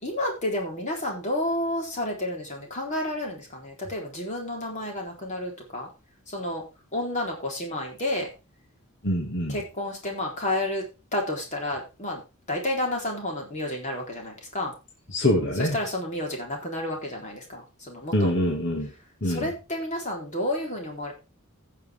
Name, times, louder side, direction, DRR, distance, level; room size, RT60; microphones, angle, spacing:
voice 1, 0.0-5.9 6.3-6.6 6.9-8.3 9.5-10.9 11.1-12.2 12.5-14.7 15.6-18.3 19.2-21.1, left 1 dB, 35° left, 0 dB, 4.0 m, -30 dB
voice 2, 9.0-9.6 15.1-15.8 18.1-18.9 19.2-19.5, left 1 dB, 55° left, 1 dB, 2.2 m, -24 dB
15.5 x 6.8 x 3.6 m, 0.29 s
head